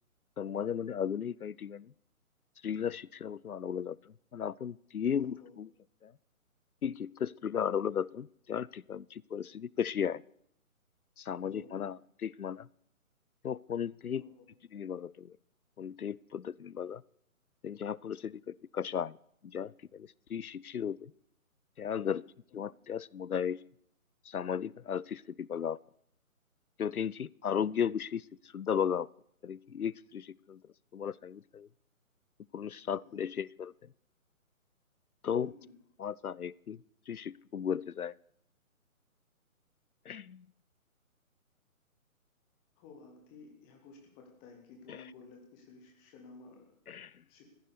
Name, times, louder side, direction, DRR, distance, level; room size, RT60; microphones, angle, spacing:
voice 1, 0.4-1.9 2.6-5.7 6.0-6.1 6.8-10.2 11.2-12.7 13.4-14.2 14.7-15.4 15.8-17.0 17.6-19.2 19.4-21.1 21.8-22.2 22.5-23.6 24.2-25.8 26.8-29.1 29.4-31.7 32.5-33.9 35.2-35.5 36.0-38.1 40.1-40.5 44.9-45.0 46.9-47.2, left 8 dB, 80° left, 24 dB, 0.6 m, -35 dB
voice 2, 5.1-5.5 11.4-11.7 14.1-14.3 22.5-22.6 32.9-33.2 35.4-35.7 42.8-47.0 47.3-47.4, left 4 dB, 5° left, 2 dB, 0.8 m, -54 dB
14.5 x 10.0 x 6.8 m, 0.71 s
figure-of-eight pair, 140°, 43 cm